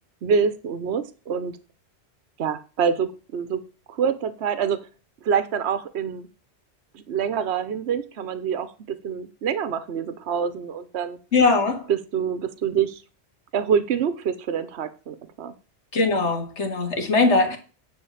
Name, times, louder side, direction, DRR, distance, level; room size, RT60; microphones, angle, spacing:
voice 1, 0.2-1.5 2.4-3.6 3.9-4.8 5.2-6.3 7.1-11.2 11.9-13.0 13.5-15.5, right 7 dB, 65° right, 1.1 m, -26 dB
voice 2, 11.3-11.9 15.9-17.6, left 3 dB, 75° left, 2.1 m, -20 dB
10.0 x 4.1 x 7.1 m
omnidirectional pair, 1.2 m